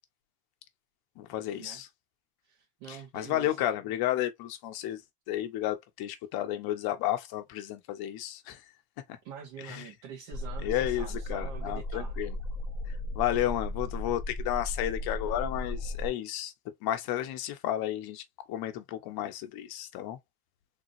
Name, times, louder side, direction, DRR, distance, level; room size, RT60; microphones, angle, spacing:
voice 1, 1.2-1.9 2.9-5.0 5.3-8.6 9.6-9.8 10.6-12.4 13.1-16.5 16.8-20.2, left 13 dB, 55° left, 1.0 m, -32 dB
voice 2, 2.4-3.6 9.2-12.1, right 7 dB, 65° right, 1.8 m, -45 dB
sound 1, 10.3-16.1, left 1 dB, ahead, 0.9 m, -35 dB
3.8 x 3.0 x 2.5 m
cardioid pair, 155°, 45 cm